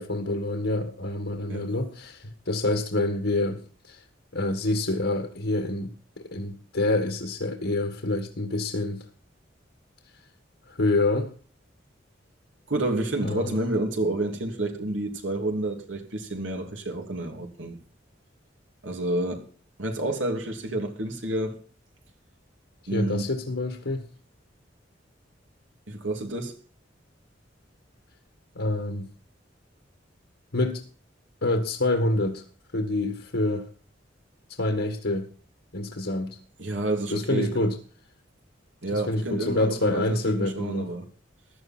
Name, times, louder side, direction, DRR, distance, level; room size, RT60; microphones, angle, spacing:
voice 1, 0.0-4.0 4.3-9.1 10.7-11.3 13.2-13.6 22.9-24.1 28.6-29.1 30.5-30.8 31.4-32.4 32.7-33.7 34.6-35.3 35.7-36.4 37.1-37.8 38.9-40.9, left 2 dB, 75° left, 1.8 m, -27 dB
voice 2, 12.7-17.8 18.8-19.5 19.8-21.6 22.9-23.3 25.9-26.5 36.6-37.7 38.8-41.1, right 1 dB, 90° right, 2.9 m, -29 dB
15.5 x 11.5 x 4.4 m
head